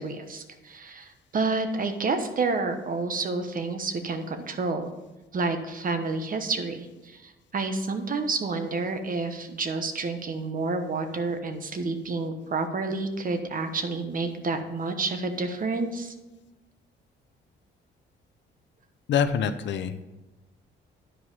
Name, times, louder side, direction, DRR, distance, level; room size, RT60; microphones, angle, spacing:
voice 1, 0.0-4.9 5.3-16.1, right 3 dB, 45° right, 7 dB, 1.1 m, -29 dB
voice 2, 19.1-20.0, left 7 dB, 65° left, 11 dB, 0.6 m, -25 dB
10.0 x 4.8 x 5.4 m, 1.1 s
cardioid pair, 90°, 20 cm